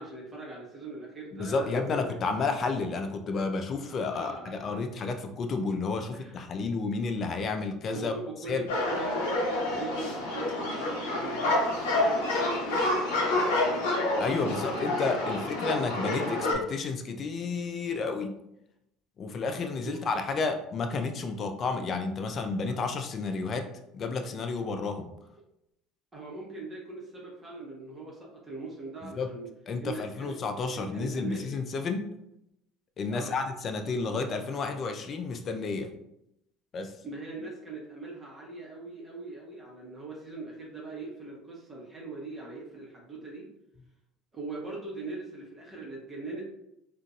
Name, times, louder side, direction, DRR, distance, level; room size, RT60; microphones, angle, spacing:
voice 1, 0.0-2.0 3.8-4.8 6.1-6.4 7.9-13.8 14.3-15.5 19.8-19.9 22.7-22.8 26.1-29.5 29.8-31.5 33.1-33.4 37.0-43.5 44.3-46.4, right 3 dB, 25° right, -3 dB, 1.0 m, -41 dB
voice 2, 1.3-8.1 8.5-8.6 14.2-18.4 19.2-23.7 23.9-25.1 29.0-29.3 29.7-32.1 33.0-35.9 36.7-36.9, left 4 dB, 45° left, 6 dB, 0.5 m, -31 dB
sound 1, 8.7-16.5, left 2 dB, 85° left, 0.9 m, -28 dB
3.8 x 2.5 x 2.3 m, 0.82 s
hypercardioid pair, 70°, 0 cm